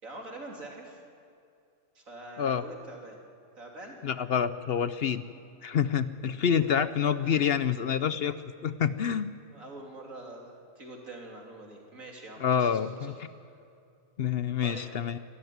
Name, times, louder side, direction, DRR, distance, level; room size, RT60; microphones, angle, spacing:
voice 1, 0.0-1.0 2.0-3.2 3.6-4.0 7.2-7.5 9.5-13.1 13.4-13.6 14.6-14.9, right 2 dB, 90° right, 0 dB, 3.7 m, -45 dB
voice 2, 4.0-5.2 5.6-8.3 8.6-9.4 12.4-13.1 14.2-15.2, left 7 dB, 55° left, 13 dB, 0.8 m, -27 dB
24.5 x 14.0 x 9.4 m, 2.4 s
omnidirectional pair, 1.4 m